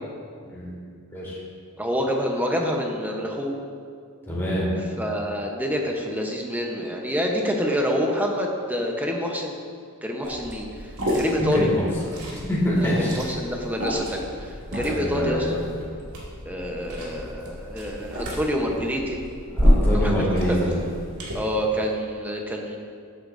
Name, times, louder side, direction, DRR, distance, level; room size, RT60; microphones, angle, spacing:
voice 1, 1.8-3.5 5.0-9.5 10.0-11.7 12.8-15.6 16.4-19.2 19.9-20.1 20.5-20.6 21.3-22.8, equal, 10° right, 0 dB, 0.9 m, -27 dB
voice 2, 4.3-4.7 11.4-11.8 12.3-13.2 14.7-15.5 19.5-20.7, equal, 10° left, -7 dB, 2.3 m, -25 dB
Liquid, 10.2-21.3, equal, 90° right, 2.4 m, -28 dB
14.0 x 8.3 x 2.7 m, 2.2 s
head